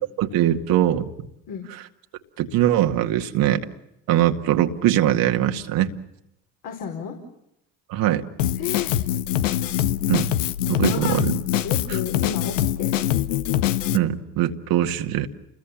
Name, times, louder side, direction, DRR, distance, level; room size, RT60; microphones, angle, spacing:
voice 1, 0.2-1.1 2.4-3.6 4.1-5.9 7.9-8.2 10.1-10.3 10.7-11.3 11.9-12.0 13.9-15.3, right 12 dB, 65° right, 6 dB, 2.1 m, -21 dB
voice 2, 6.6-7.1 8.6-8.9 10.7-11.1 11.6-13.1, left 7 dB, 60° left, 1 dB, 4.9 m, -32 dB
Drum kit, 8.4-14.0, left 12 dB, 85° left, 1.0 m, -23 dB
29.5 x 21.5 x 7.3 m, 0.82 s
hypercardioid pair, 70°, 37 cm